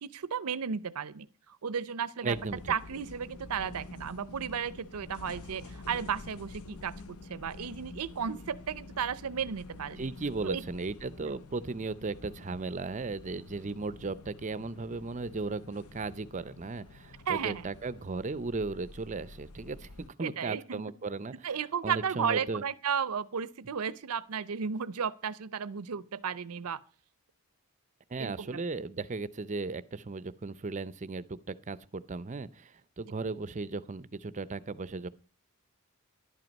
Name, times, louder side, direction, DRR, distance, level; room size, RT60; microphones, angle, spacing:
voice 1, 0.0-2.4 2.7-10.1 10.4-10.6 11.3-11.4 17.3-17.7 20.2-20.8 21.4-26.8 28.2-28.6, right 7 dB, 85° right, 0.6 m, -34 dB
voice 2, 2.2-2.7 10.0-21.5 21.8-22.6 28.1-35.1, right 3 dB, 35° right, 0.5 m, -36 dB
sound 1, 2.3-20.1, left 2 dB, 85° left, 0.8 m, -48 dB
11.5 x 11.0 x 5.2 m
head